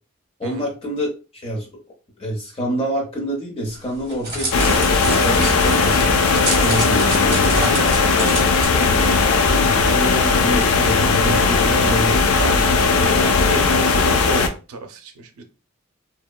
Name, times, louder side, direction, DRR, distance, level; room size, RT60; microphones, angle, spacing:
voice 1, 0.4-1.1 1.3-1.7 2.2-6.1 6.6-7.8 9.5-12.5, equal, 25° left, -1 dB, 0.7 m, -27 dB
Crackle, 3.7-8.7, right 2 dB, 20° right, 0.9 m, -28 dB
sound 1, 4.5-14.5, left 4 dB, 75° left, 0.4 m, -17 dB
voice 2, 7.5-7.9 8.2-8.5 8.7-8.9 12.3-12.7 13.0-15.4, right 2 dB, 80° right, 7 dB, 0.4 m, -30 dB
2.8 x 2.1 x 2.2 m, 0.32 s
head